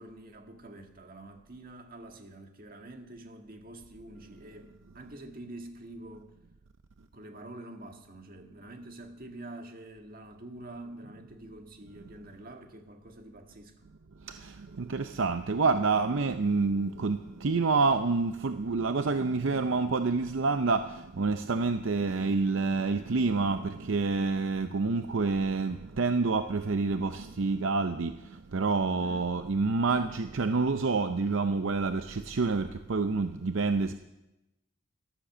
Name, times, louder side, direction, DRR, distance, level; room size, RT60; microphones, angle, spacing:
voice 1, 0.0-6.3 7.1-13.8 29.0-29.3, right 1 dB, 45° right, 4 dB, 1.7 m, -46 dB
voice 2, 14.2-33.9, right 4 dB, 65° right, 9 dB, 0.6 m, -28 dB
13.0 x 12.0 x 7.3 m, 0.94 s
head